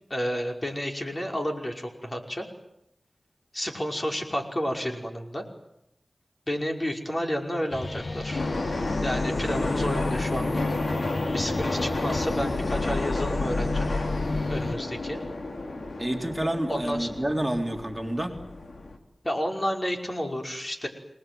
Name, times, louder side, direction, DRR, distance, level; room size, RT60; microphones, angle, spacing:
voice 1, 0.1-2.5 3.5-5.5 6.5-8.4 9.0-10.8 11.3-13.9 14.5-15.2 16.7-17.1 19.2-20.9, equal, 35° left, 2 dB, 5.5 m, -31 dB
sound 1, 7.7-14.8, left 3 dB, 60° left, 1.4 m, -31 dB
sound 2, 8.3-19.0, left 2 dB, 75° left, 3.7 m, -31 dB
voice 2, 16.0-18.3, right 1 dB, 15° right, 3 dB, 3.3 m, -29 dB
28.0 x 20.5 x 9.3 m, 0.79 s
cardioid pair, 45°, 0 cm